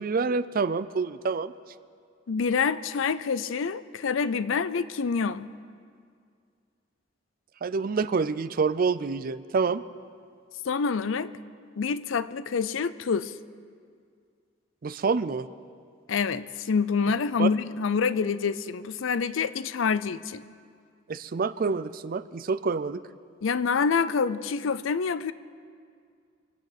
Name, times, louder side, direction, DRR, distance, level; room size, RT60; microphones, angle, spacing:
voice 1, 0.0-1.5 7.6-9.8 14.8-15.5 17.4-17.5 21.1-23.0, right 4 dB, 50° right, 15 dB, 0.4 m, -27 dB
voice 2, 2.3-5.5 10.6-11.3 11.8-13.3 16.1-20.4 23.4-25.3, left 5 dB, 80° left, 16 dB, 0.5 m, -27 dB
24.5 x 8.3 x 6.0 m, 2.2 s
head